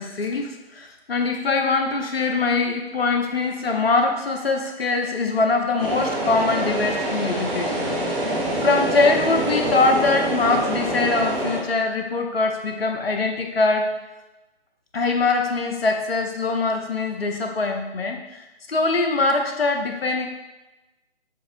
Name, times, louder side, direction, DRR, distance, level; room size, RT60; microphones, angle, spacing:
voice 1, 0.0-7.9 8.6-13.9 14.9-20.3, left 3 dB, 65° left, 4 dB, 0.7 m, -23 dB
sound 1, 5.8-11.6, right 1 dB, 20° right, 1.3 m, -25 dB
7.3 x 2.5 x 2.6 m, 1.0 s
figure-of-eight pair, 140°, 33 cm